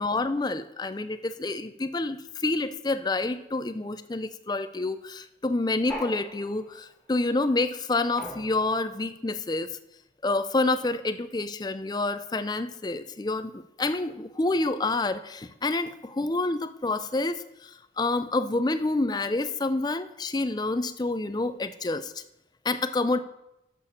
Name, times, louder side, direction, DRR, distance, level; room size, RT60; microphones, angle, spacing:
voice 1, 0.0-9.7 10.2-17.7 18.0-22.1 22.6-23.2, left 2 dB, 20° left, 11 dB, 0.4 m, -28 dB
sound 1, 5.9-6.9 8.2-9.0, equal, 5° left, 1.9 m, -40 dB
6.8 x 6.5 x 7.0 m, 0.85 s
head